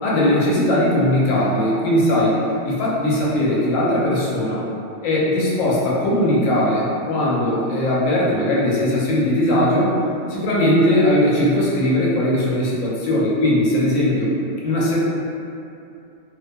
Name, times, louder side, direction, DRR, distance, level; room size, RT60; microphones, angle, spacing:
voice 1, 0.0-2.4 2.6-4.6 5.0-9.9 10.3-14.3 14.6-15.0, left 1 dB, 90° left, -6 dB, 1.0 m, -19 dB
2.4 x 2.2 x 2.5 m, 2.6 s
omnidirectional pair, 1.3 m